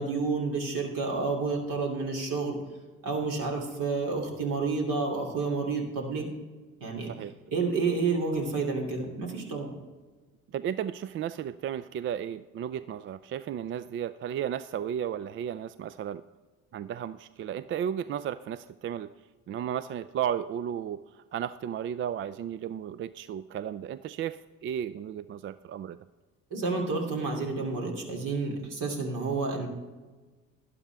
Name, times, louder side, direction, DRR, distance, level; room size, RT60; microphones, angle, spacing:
voice 1, 0.0-2.6 3.0-6.3 6.8-7.1 7.5-9.7 26.5-29.7, right 4 dB, 55° right, 1 dB, 2.9 m, -30 dB
voice 2, 10.5-16.2 16.7-19.1 19.5-26.0, right 9 dB, 35° right, 15 dB, 0.4 m, -34 dB
12.0 x 11.0 x 3.5 m, 1.3 s
hypercardioid pair, 65°, 38 cm